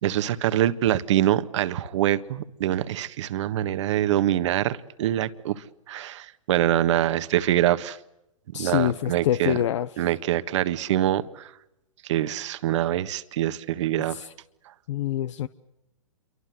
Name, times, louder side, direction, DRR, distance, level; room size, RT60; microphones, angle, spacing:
voice 1, 0.0-8.0 8.5-9.6 10.0-11.5 12.0-14.2, right 12 dB, 60° right, 1.5 m, -25 dB
voice 2, 8.5-9.9 14.1-14.3 14.9-15.5, left 11 dB, 60° left, 1.0 m, -26 dB
28.0 x 24.5 x 8.0 m
hypercardioid pair, 130°, 18 cm